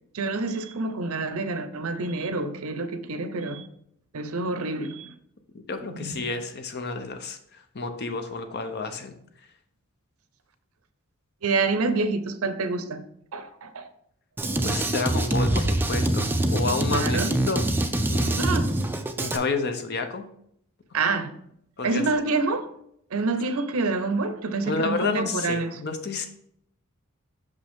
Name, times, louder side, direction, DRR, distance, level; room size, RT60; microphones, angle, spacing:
voice 1, 0.1-3.7 4.1-5.1 5.9-6.3 11.4-13.0 13.3-13.9 16.9-17.3 18.4-18.7 20.9-21.4 21.8-22.8 23.1-25.8, right 3 dB, 75° right, 0.6 m, -27 dB
voice 2, 5.5-9.2 14.6-17.7 18.0-18.5 19.2-20.2 21.8-22.0 24.6-26.3, left 3 dB, 45° left, 0.7 m, -30 dB
Drum kit, 14.4-19.4, right 1 dB, 10° right, 0.4 m, -24 dB
6.3 x 5.3 x 3.5 m
head